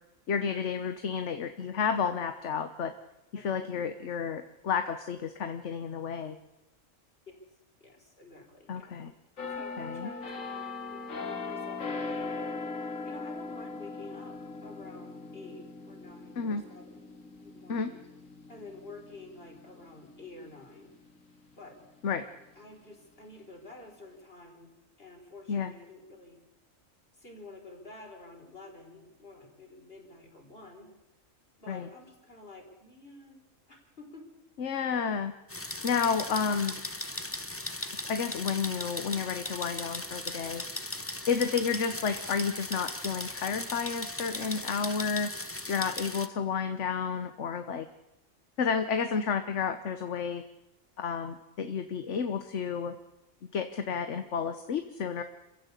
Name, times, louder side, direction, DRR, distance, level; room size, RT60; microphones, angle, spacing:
voice 1, 0.3-2.9 3.3-6.4 8.7-9.1 9.8-10.1 16.3-16.6 17.7-17.9 22.0-22.2 25.5-25.7 31.7-31.9 34.6-35.3 35.8-36.8 38.1-40.6 41.3-45.3 45.7-47.9 48.6-50.4 51.0-53.0 53.5-55.2, left 6 dB, 65° left, 9 dB, 1.4 m, -31 dB
voice 2, 7.8-8.9 9.4-17.1 17.4-18.0 18.5-20.9 21.5-21.8 22.6-24.7 25.0-26.4 27.2-30.9 31.6-34.3, left 2 dB, 45° left, 2 dB, 4.8 m, -50 dB
sound 1, 9.4-20.9 21.4-21.6, left 4 dB, 85° left, 2.5 m, -40 dB
sound 2, 35.5-46.3, left 1 dB, 10° left, 0.9 m, -38 dB
27.0 x 15.5 x 8.3 m, 0.95 s
omnidirectional pair, 1.3 m